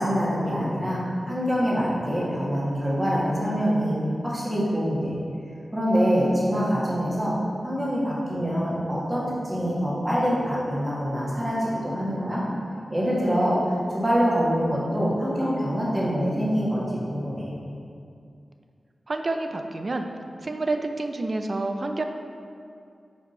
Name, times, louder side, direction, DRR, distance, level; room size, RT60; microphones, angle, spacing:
voice 1, 0.0-4.0 4.2-5.1 5.7-7.3 7.6-12.4 12.9-17.5, equal, 20° right, -7 dB, 1.5 m, -25 dB
voice 2, 19.1-20.1 20.4-22.0, right 2 dB, 45° right, 5 dB, 0.4 m, -28 dB
5.4 x 4.8 x 4.3 m, 2.4 s
wide cardioid pair, 110°, 0 cm